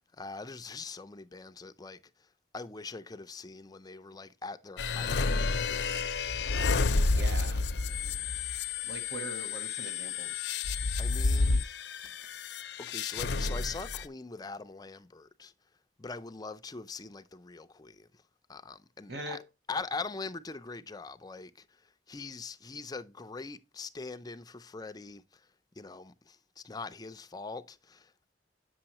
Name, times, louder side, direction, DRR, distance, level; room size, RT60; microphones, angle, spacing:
voice 1, 0.2-2.3 2.5-6.1 11.0-11.8 12.8-15.5 16.0-18.1 18.5-19.4 19.7-21.8 22.1-25.5 25.8-28.3, left 4 dB, 20° left, 0.5 m, -42 dB
sound 1, 4.8-14.0, left 3 dB, 70° left, 0.6 m, -30 dB
voice 2, 7.1-7.6 8.8-10.4 19.1-19.4, right 2 dB, 65° right, 1.1 m, -41 dB
8.8 x 6.2 x 2.9 m
head